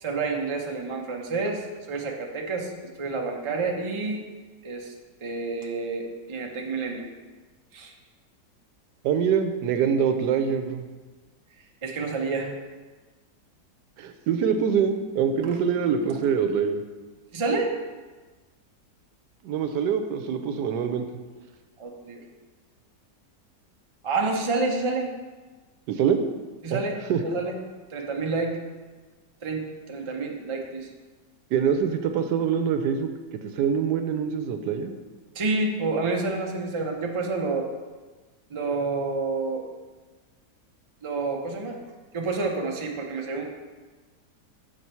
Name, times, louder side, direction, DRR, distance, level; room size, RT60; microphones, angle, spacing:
voice 1, 0.0-4.3 4.6-4.9 5.2-7.1 7.7-7.9 11.8-12.5 15.9-16.2 17.3-17.7 21.8-22.2 24.0-25.1 26.6-27.6 27.9-28.6 29.4-30.9 35.3-37.7 38.5-39.7 41.0-41.8 42.1-43.4, right 3 dB, 30° right, 1 dB, 0.5 m, -29 dB
voice 2, 9.0-10.9 14.0-16.8 19.4-21.1 25.9-26.2 26.7-26.8 27.1-27.2 31.5-33.1 33.5-34.9, right 7 dB, 80° right, 7 dB, 1.2 m, -24 dB
7.1 x 4.5 x 5.5 m, 1.3 s
omnidirectional pair, 1.8 m